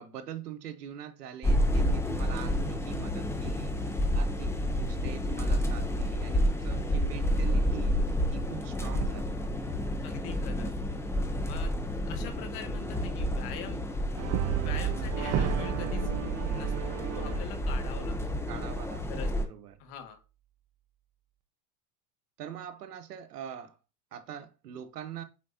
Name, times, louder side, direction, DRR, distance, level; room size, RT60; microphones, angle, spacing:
voice 1, 0.0-8.0 8.3-9.4 18.5-19.8 22.4-23.8 24.1-25.2, right 9 dB, 85° right, 1.1 m, -43 dB
sound 1, 1.4-19.4, equal, 5° left, 0.9 m, -30 dB
voice 2, 10.0-10.7 11.5-11.7 12.1-13.8 14.6-16.1 16.4-18.5 19.1-19.3 19.8-20.2, left 9 dB, 50° left, 1.8 m, -43 dB
Brass instrument, 14.2-18.4, right 12 dB, 35° right, 0.7 m, -32 dB
8.5 x 4.4 x 2.8 m
hypercardioid pair, 100°, 46 cm